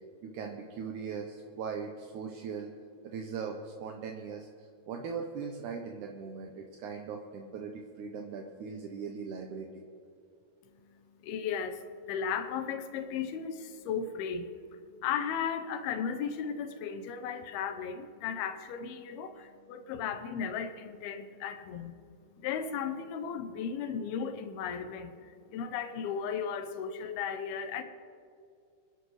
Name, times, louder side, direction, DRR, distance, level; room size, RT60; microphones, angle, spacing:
voice 1, 0.2-2.7 3.0-9.7, right 5 dB, 75° right, 2 dB, 2.0 m, -40 dB
voice 2, 11.2-22.0 22.3-27.8, left 7 dB, 85° left, 9 dB, 2.8 m, -36 dB
27.5 x 10.5 x 3.2 m, 2.4 s
omnidirectional pair, 4.4 m